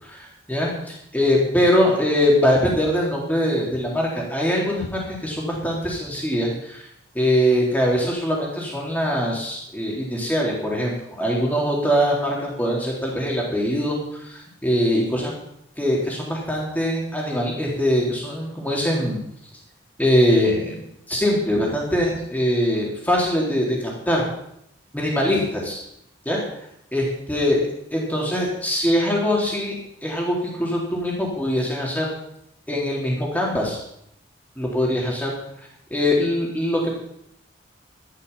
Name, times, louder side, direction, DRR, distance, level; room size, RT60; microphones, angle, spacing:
voice 1, 0.0-6.8 7.1-15.3 15.8-19.2 20.0-20.8 21.1-24.2 24.9-25.8 26.3-26.4 26.9-27.6 27.9-29.7 30.0-32.1 32.7-33.8 34.6-35.3 35.9-36.9, equal, 10° left, -3 dB, 3.8 m, -22 dB
13.0 x 11.5 x 5.7 m, 0.75 s
head